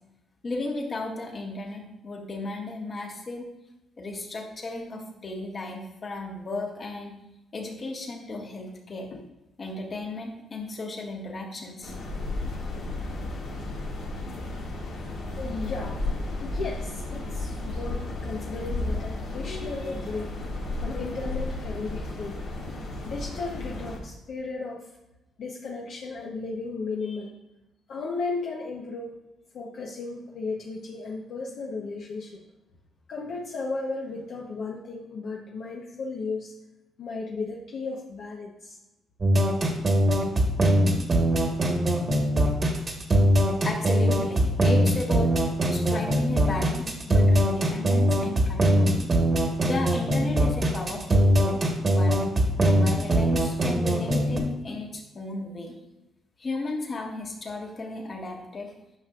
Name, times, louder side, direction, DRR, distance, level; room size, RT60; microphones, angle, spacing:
voice 1, 0.4-3.5 4.0-7.1 7.5-9.1 9.6-11.9 43.6-45.3 45.7-49.0 49.6-52.2 52.6-55.7 56.4-58.7, left 2 dB, 40° left, 0 dB, 1.6 m, -34 dB
sound 1, 11.8-24.0, left 2 dB, 80° left, 2.0 m, -33 dB
voice 2, 15.4-16.1 16.4-20.5 20.8-22.4 23.0-24.9 25.4-27.3 27.9-29.2 29.5-32.4 33.1-36.5 37.0-38.8, left 3 dB, 65° left, -2 dB, 0.9 m, -35 dB
sound 2, 39.2-54.4, equal, 35° right, 1.4 m, -22 dB
9.6 x 5.9 x 2.4 m, 0.92 s
cardioid pair, 90°, 0 cm